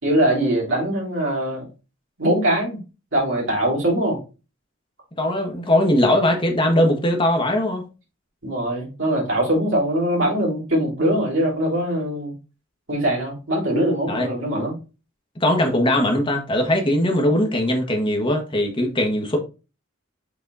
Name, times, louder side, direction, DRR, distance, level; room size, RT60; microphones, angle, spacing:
voice 1, 0.0-1.7 2.2-2.8 3.1-4.2 8.4-12.3 12.9-14.7, right 1 dB, 65° right, 4.0 m, -22 dB
voice 2, 5.2-7.8 14.1-14.3 15.4-19.4, left 1 dB, 25° left, 1.4 m, -20 dB
7.0 x 4.2 x 4.1 m
head